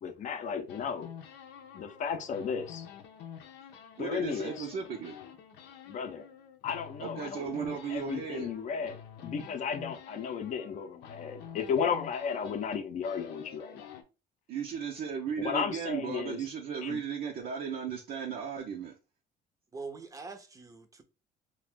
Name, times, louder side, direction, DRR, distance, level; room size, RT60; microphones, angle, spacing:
voice 1, 0.0-1.1 1.7-2.8 4.0-4.7 5.9-6.2 6.6-7.5 7.9-9.0 9.2-13.9 15.4-16.4 16.8-17.0, left 6 dB, 45° left, 0.5 m, -34 dB
sound 1, 0.7-4.0 4.3-14.0, left 8 dB, 90° left, 0.6 m, -48 dB
voice 2, 4.0-5.2 7.0-8.5 14.5-19.0, right 7 dB, 65° right, 0.6 m, -36 dB
voice 3, 19.7-21.0, right 4 dB, 20° right, 0.6 m, -43 dB
2.5 x 2.3 x 3.5 m
cardioid pair, 110°, 17 cm